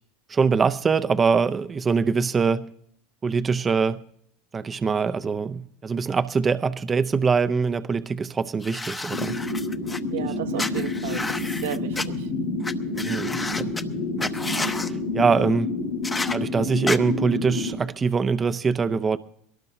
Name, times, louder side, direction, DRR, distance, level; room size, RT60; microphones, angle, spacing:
voice 1, 0.3-2.7 3.2-4.0 4.5-9.4 13.0-13.7 14.2-14.3 14.9-15.7 16.3-19.2, right 5 dB, 25° right, 0.6 m, -23 dB
sound 1, 8.6-10.0 10.6-12.0 12.6-12.7 13.0-13.8 14.2-14.9 16.0-16.4 16.9-17.0, left 2 dB, 15° left, 0.9 m, -30 dB
sound 2, 9.1-17.7, left 2 dB, 85° left, 3.7 m, -29 dB
voice 2, 10.1-12.3, right 11 dB, 85° right, 1.2 m, -34 dB
22.0 x 18.0 x 2.7 m
supercardioid pair, 105°, 0 cm